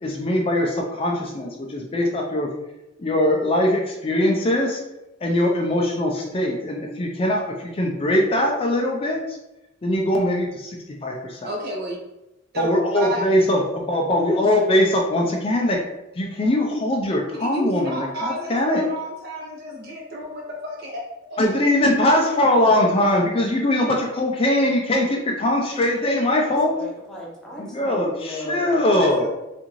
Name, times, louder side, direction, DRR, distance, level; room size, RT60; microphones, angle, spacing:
voice 1, 0.0-2.5 3.0-4.8 5.2-9.2 9.8-11.5 12.6-15.8 16.2-18.8 21.4-26.7 27.6-29.3, left 1 dB, 30° left, 1 dB, 0.4 m, -21 dB
voice 2, 11.4-12.0 12.5-12.7 12.9-13.4 17.4-21.0 21.3-21.4 29.0-29.3, equal, 55° right, -2 dB, 1.0 m, -31 dB
voice 3, 25.9-28.8, equal, 5° left, -5 dB, 0.8 m, -36 dB
3.6 x 2.5 x 3.0 m, 0.94 s
head